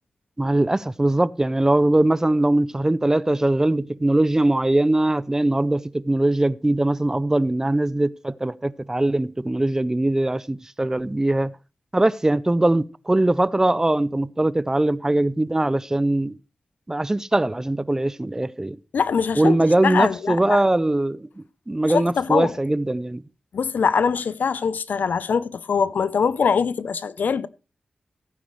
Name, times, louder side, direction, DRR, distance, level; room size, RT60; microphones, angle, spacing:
voice 1, 0.4-11.5 11.9-16.4 16.9-18.8 19.4-23.2, right 1 dB, 20° right, 0.5 m, -21 dB
voice 2, 18.9-19.6 19.8-20.6 21.9-22.5 23.5-27.5, left 6 dB, 85° left, 0.6 m, -23 dB
15.5 x 9.4 x 3.1 m
wide cardioid pair, 80°, 3 cm